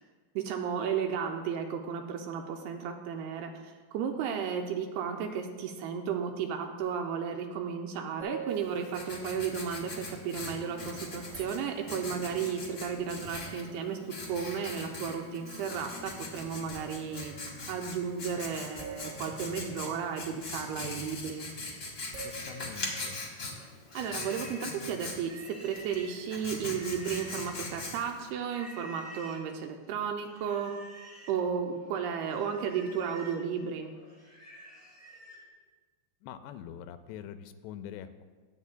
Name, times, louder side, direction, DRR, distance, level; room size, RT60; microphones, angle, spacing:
voice 1, 0.4-14.0 14.3-17.3 17.7-21.5 23.9-30.7 31.3-33.9, right 7 dB, 80° right, 3 dB, 2.5 m, -34 dB
sound 1, 8.2-9.7 10.3-10.4 11.0-12.1 13.0-13.1 13.3-13.7 16.0-16.1 16.7-17.5 18.8-20.4 22.1-23.8 25.1-25.2, right 5 dB, 30° right, 1.1 m, -46 dB
Writing, 8.5-28.3, left 2 dB, 70° left, 1.0 m, -41 dB
voice 2, 22.2-23.3 36.2-38.2, left 9 dB, 85° left, 10 dB, 2.7 m, -44 dB
Livestock farm animals working animals, 23.5-27.8 28.4-29.5 30.3-31.4 31.8-35.5, right 1 dB, 10° left, 0.8 m, -50 dB
20.5 x 8.2 x 2.2 m, 1.4 s
omnidirectional pair, 4.9 m